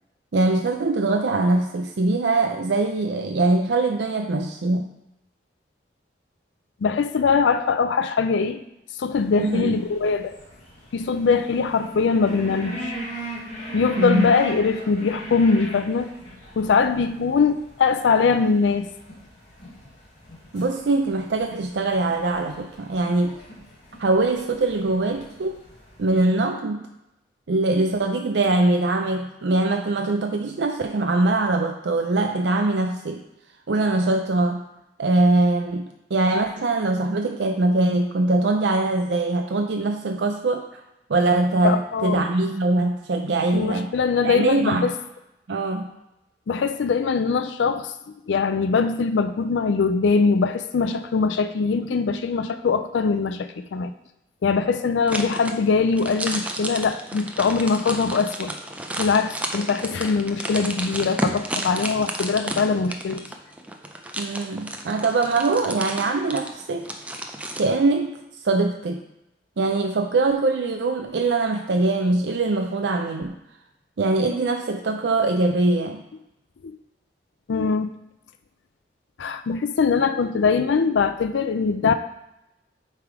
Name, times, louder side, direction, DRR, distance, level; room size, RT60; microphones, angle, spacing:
voice 1, 0.3-4.9 9.4-9.8 13.8-14.3 20.5-23.4 24.0-25.6 26.0-26.8 27.5-33.2 33.7-34.6 35.0-40.8 41.1-43.9 44.2-44.9 45.5-45.9 64.2-66.9 67.6-68.2 68.4-69.0 69.6-73.3 74.0-76.0, right 2 dB, 80° right, 4 dB, 0.5 m, -22 dB
voice 2, 6.8-8.6 9.0-10.3 10.9-12.9 13.7-16.1 16.6-18.9 41.6-42.3 43.5-44.9 46.5-47.9 48.3-53.9 54.4-58.5 59.0-63.3 76.6-76.8 77.5-77.9 79.2-81.9, left 5 dB, 85° left, 10 dB, 0.4 m, -22 dB
sound 1, 9.1-26.3, equal, 35° left, 2.2 m, -40 dB
sound 2, 55.1-67.7, right 1 dB, 10° right, 0.4 m, -32 dB
8.1 x 3.4 x 4.8 m, 0.87 s
head